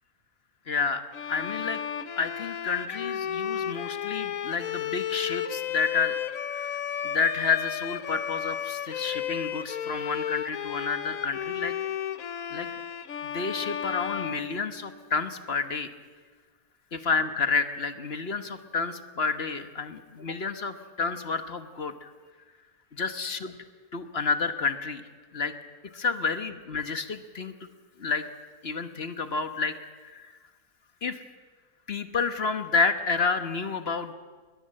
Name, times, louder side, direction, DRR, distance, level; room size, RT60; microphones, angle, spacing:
voice 1, 0.7-1.0 1.3-1.8 2.2-6.2 6.5-11.7 12.5-12.7 13.2-15.9 16.9-22.1 22.9-23.6 23.9-25.0 25.3-25.5 25.9-27.5 28.0-28.2 28.6-29.7 30.0-30.3 31.0-31.2 31.9-34.1, left 5 dB, 45° left, 10 dB, 1.4 m, -30 dB
Bowed string instrument, 1.1-15.2, left 9 dB, 70° left, 1.3 m, -33 dB
21.5 x 20.5 x 7.6 m, 1.4 s
omnidirectional pair, 1.5 m